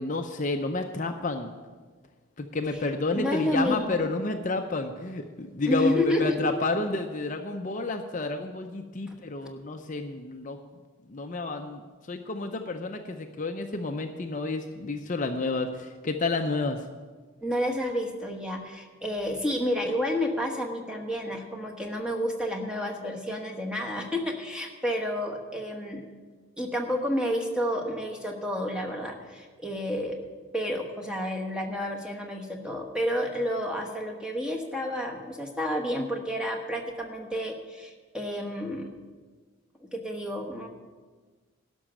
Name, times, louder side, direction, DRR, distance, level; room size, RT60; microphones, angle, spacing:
voice 1, 0.0-1.5 2.4-10.6 11.1-11.8 12.1-16.8, left 3 dB, 35° left, 5 dB, 0.6 m, -30 dB
voice 2, 3.1-4.0 5.7-6.5 9.1-9.2 17.4-26.0 26.6-30.2 30.5-38.9 39.8-40.7, equal, 5° right, 2 dB, 1.2 m, -30 dB
12.0 x 6.2 x 8.8 m, 1.4 s
head